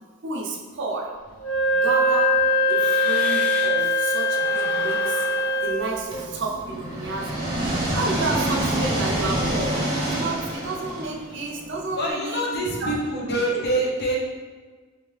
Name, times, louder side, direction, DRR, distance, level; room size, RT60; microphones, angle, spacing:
voice 1, 0.2-1.1 1.7-2.4 2.7-5.3 5.6-7.3 7.9-13.3 13.5-13.6, right 2 dB, 60° right, -1 dB, 0.6 m, -30 dB
sound 1, 1.3-3.9 4.2-7.3, equal, 5° left, 0.6 m, -38 dB
Wind instrument woodwind instrument, 1.4-5.9, left 1 dB, 75° left, 0.6 m, -22 dB
sound 2, 6.1-12.0, right 1 dB, 20° right, 0.9 m, -27 dB
voice 2, 11.9-14.2, right 1 dB, 50° left, -3 dB, 0.9 m, -25 dB
3.6 x 3.4 x 3.2 m, 1.4 s
head